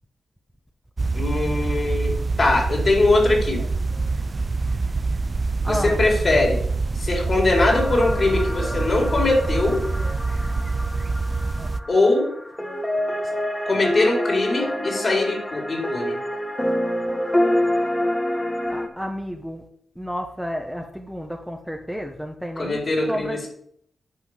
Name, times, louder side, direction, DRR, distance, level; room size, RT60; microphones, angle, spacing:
sound 1, 1.0-11.8, right 3 dB, 40° right, 0.6 m, -25 dB
voice 1, 1.1-3.6 5.7-6.6 6.9-9.8 11.9-12.3 13.7-16.2 22.6-23.5, left 2 dB, 45° left, 0 dB, 4.4 m, -21 dB
voice 2, 5.6-6.0 18.7-19.6 20.0-22.8 23.1-23.5, equal, 5° right, 3 dB, 1.3 m, -31 dB
sound 2, 7.6-18.9, left 1 dB, 15° left, 2.1 m, -27 dB
9.3 x 5.8 x 8.2 m, 0.67 s
cardioid pair, 65°, 0 cm